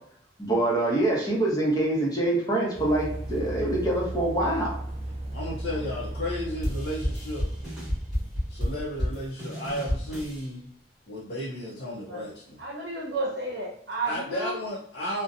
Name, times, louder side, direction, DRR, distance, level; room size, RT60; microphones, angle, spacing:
voice 1, 0.4-4.8, right 1 dB, 20° left, -4 dB, 0.7 m, -25 dB
sound 1, 2.7-8.6, right 1 dB, 35° right, 0.3 m, -36 dB
voice 2, 5.3-7.5 8.5-10.7 11.1-12.6 14.0-15.2, left 1 dB, 70° left, -6 dB, 0.6 m, -33 dB
sound 2, 6.6-10.5, equal, ahead, 1.0 m, -31 dB
voice 3, 11.8-12.3 12.6-14.6, right 2 dB, 70° right, 0 dB, 0.7 m, -33 dB
2.6 x 2.1 x 2.4 m, 0.70 s
head